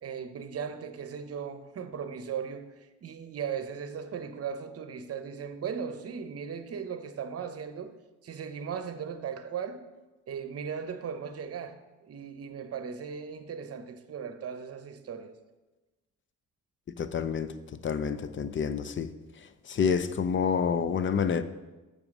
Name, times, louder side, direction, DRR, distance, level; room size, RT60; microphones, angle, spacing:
voice 1, 0.0-7.9 8.2-9.8 10.3-15.4, right 7 dB, 50° right, 0.9 m, -37 dB
voice 2, 17.0-17.5 17.8-19.1 19.7-21.4, left 6 dB, 40° left, 0.6 m, -28 dB
7.0 x 6.8 x 6.0 m
cardioid pair, 90°, 30 cm